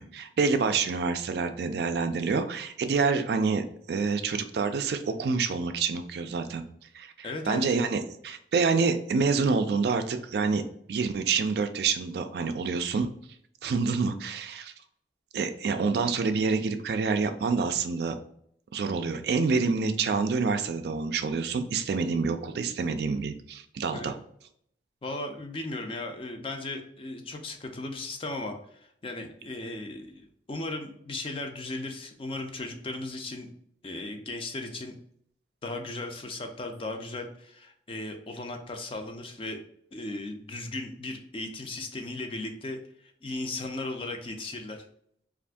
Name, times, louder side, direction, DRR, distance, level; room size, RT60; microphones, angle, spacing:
voice 1, 0.0-6.6 6.9-10.6 10.9-13.1 13.6-14.7 15.3-18.2 18.7-24.1, right 4 dB, 60° right, 8 dB, 0.3 m, -27 dB
voice 2, 7.2-7.6 23.9-24.1 25.0-33.5 33.8-35.0 35.6-39.6 39.9-44.8, left 2 dB, 30° left, 4 dB, 0.4 m, -36 dB
2.6 x 2.4 x 3.4 m, 0.67 s
head